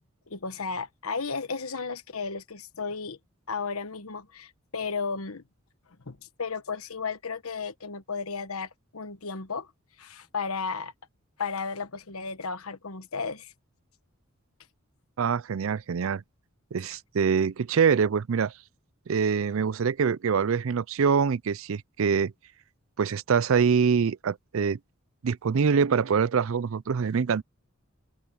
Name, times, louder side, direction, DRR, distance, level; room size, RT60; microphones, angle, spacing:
voice 1, 0.3-3.2 3.5-5.4 6.1-9.7 10.0-10.9 11.4-13.5, left 5 dB, 85° left, 1.3 m, -34 dB
voice 2, 15.2-16.2 16.7-18.5 19.1-22.3 23.0-24.8 25.2-27.4, right 6 dB, 70° right, 0.4 m, -24 dB
open air
head